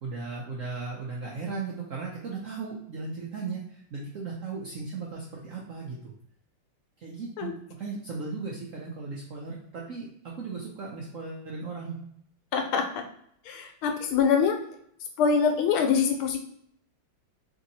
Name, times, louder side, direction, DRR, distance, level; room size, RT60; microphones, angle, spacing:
voice 1, 0.0-6.1 7.0-12.0, right 4 dB, 80° right, -3 dB, 0.7 m, -36 dB
voice 2, 12.5-13.0 13.5-14.6 15.2-16.4, left 6 dB, 90° left, 5 dB, 1.5 m, -24 dB
3.4 x 2.8 x 4.0 m, 0.68 s
omnidirectional pair, 2.3 m